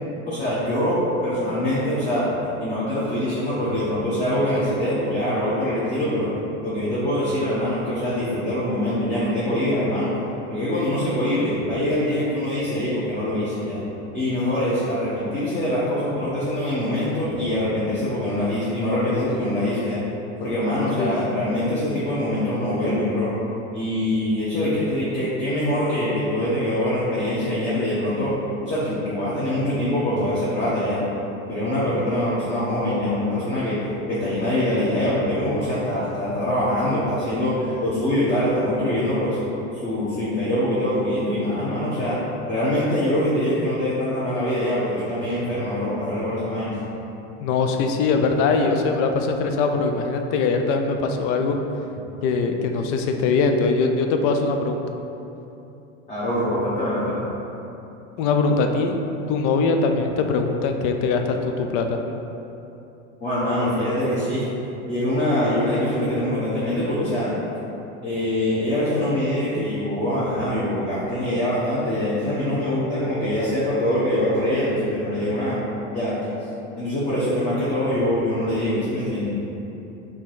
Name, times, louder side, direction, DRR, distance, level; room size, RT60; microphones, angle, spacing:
voice 1, 0.3-1.0 1.2-2.3 2.6-6.3 6.6-10.1 10.5-13.8 14.1-20.0 20.4-23.3 23.7-28.3 28.7-31.0 31.5-33.8 34.1-39.4 39.8-42.2 42.5-46.8 56.1-57.2 63.2-64.4 64.9-67.3 68.0-75.6 75.9-76.2 76.8-79.4, left 1 dB, 20° left, -10 dB, 0.9 m, -24 dB
voice 2, 21.0-21.3 47.4-51.6 52.2-54.8 58.2-59.0 59.3-62.0, left 4 dB, 40° left, 5 dB, 0.4 m, -22 dB
3.6 x 2.8 x 4.7 m, 3.0 s
supercardioid pair, 130°, 37 cm